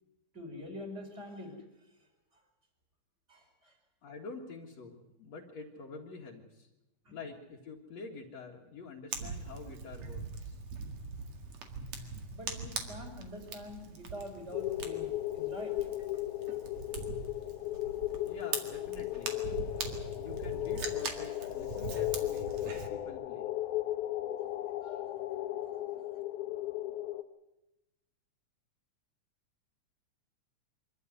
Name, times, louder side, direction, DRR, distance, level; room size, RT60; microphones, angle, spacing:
voice 1, 0.3-1.5 3.3-3.7 7.0-7.2 12.3-15.1 15.3-15.7 24.8-25.0, left 1 dB, 20° right, 3 dB, 4.9 m, -45 dB
voice 2, 4.0-6.7 7.1-10.5 18.3-19.4 20.2-23.5, left 4 dB, 65° left, -2 dB, 2.9 m, -47 dB
Fire, 9.1-22.9, right 5 dB, 60° right, 3.2 m, -42 dB
sound 1, 14.5-27.2, left 14 dB, 85° left, 2.5 m, -36 dB
24.5 x 14.0 x 9.4 m, 0.96 s
omnidirectional pair, 3.4 m